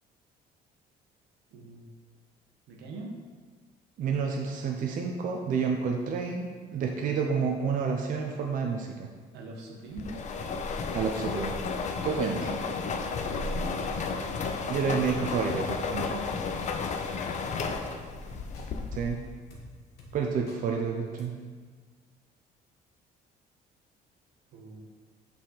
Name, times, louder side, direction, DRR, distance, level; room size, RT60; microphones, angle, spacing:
voice 1, 1.5-1.8 2.7-3.2 9.3-10.1 17.5-17.8 24.5-24.8, right 2 dB, 90° right, 0 dB, 1.2 m, -42 dB
voice 2, 4.0-9.1 10.9-11.6 12.0-12.8 14.7-16.3 18.9-19.2 20.1-21.3, right 5 dB, 55° right, 1 dB, 0.6 m, -29 dB
sound 1, 10.0-19.3, left 4 dB, 45° left, 0.6 m, -33 dB
Drum kit, 13.7-13.9 14.5-14.8 15.7-15.8 16.6-16.8 17.3-17.7 18.5-18.7 19.5-19.7 20.0-20.1 20.5-20.6 21.2-21.3, left 1 dB, 70° left, 1.4 m, -50 dB
6.1 x 4.3 x 3.9 m, 1.5 s
cardioid pair, 110°, 17 cm